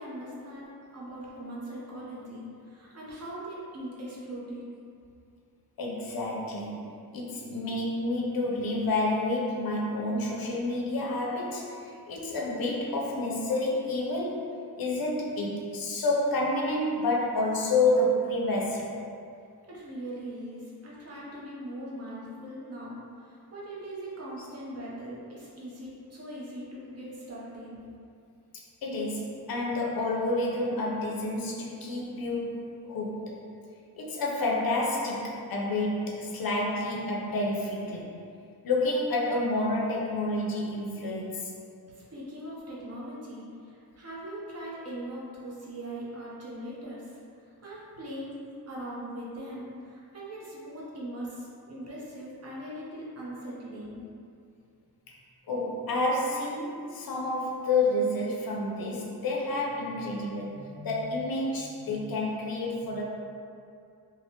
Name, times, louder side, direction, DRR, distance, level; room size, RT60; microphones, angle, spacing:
voice 1, 0.0-4.7 19.7-27.8 42.0-47.2 47.6-48.4 48.7-54.0, right 1 dB, 40° right, -6 dB, 0.7 m, -40 dB
voice 2, 5.8-18.9 28.8-33.4 34.0-38.1 38.6-41.5 55.5-63.0, left 2 dB, 60° left, -2 dB, 0.5 m, -29 dB
3.2 x 2.0 x 2.8 m, 2.4 s
wide cardioid pair, 120°, 39 cm